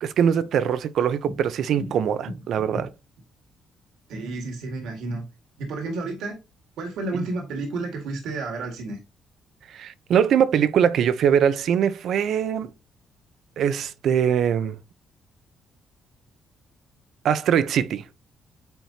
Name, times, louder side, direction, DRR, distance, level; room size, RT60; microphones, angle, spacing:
voice 1, 0.0-2.9 7.1-7.3 9.7-12.7 13.6-14.8 17.2-18.0, right 8 dB, 70° right, 0.7 m, -22 dB
voice 2, 2.2-2.9 4.1-5.2 5.6-6.4 6.8-9.0, right 2 dB, 85° right, 2.0 m, -31 dB
9.2 x 4.4 x 2.8 m
cardioid pair, 90°, 0 cm